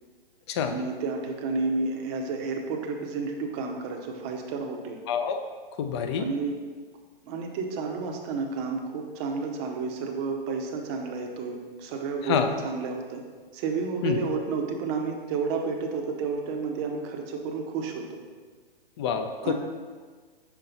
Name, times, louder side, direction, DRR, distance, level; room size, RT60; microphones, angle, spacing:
voice 1, 0.7-5.0 6.2-6.6 7.2-12.4 12.6-13.2 13.5-18.0 19.4-19.5, right 4 dB, 30° right, 2 dB, 0.7 m, -31 dB
voice 2, 5.1-5.4 5.8-6.3 12.2-12.5 14.0-14.2 19.0-19.5, left 7 dB, 30° left, 7 dB, 0.4 m, -27 dB
5.9 x 4.5 x 3.9 m, 1.5 s
hypercardioid pair, 130°, 29 cm